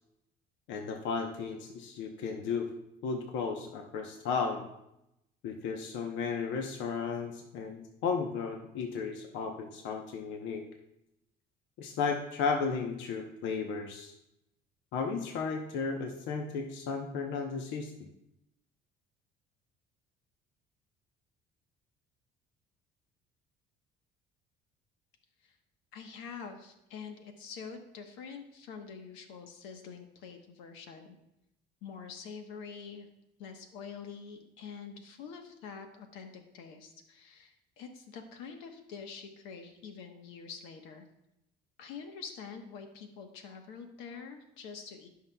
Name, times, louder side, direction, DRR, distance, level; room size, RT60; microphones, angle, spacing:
voice 1, 0.7-2.7 3.0-4.7 5.4-10.7 11.8-14.2 14.9-18.1, left 5 dB, 75° left, 3 dB, 0.9 m, -34 dB
voice 2, 25.9-31.2 31.8-33.1 33.4-41.1 41.8-45.1, left 6 dB, 90° left, 5 dB, 1.1 m, -46 dB
16.5 x 5.7 x 2.3 m, 0.84 s
cardioid pair, 130°, 19 cm